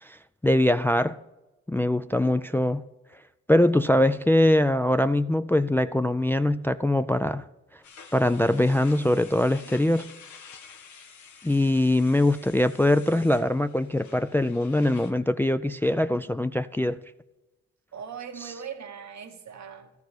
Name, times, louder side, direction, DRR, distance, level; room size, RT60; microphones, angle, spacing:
voice 1, 0.0-1.2 1.7-2.8 3.5-7.5 8.1-10.1 11.4-17.0, left 1 dB, 10° left, 0.3 m, -22 dB
sound 1, 7.8-15.1, left 6 dB, 80° left, 1.0 m, -49 dB
voice 2, 11.5-11.9 17.9-19.9, right 7 dB, 65° right, 1.2 m, -41 dB
13.0 x 4.8 x 8.0 m
supercardioid pair, 45°, 29 cm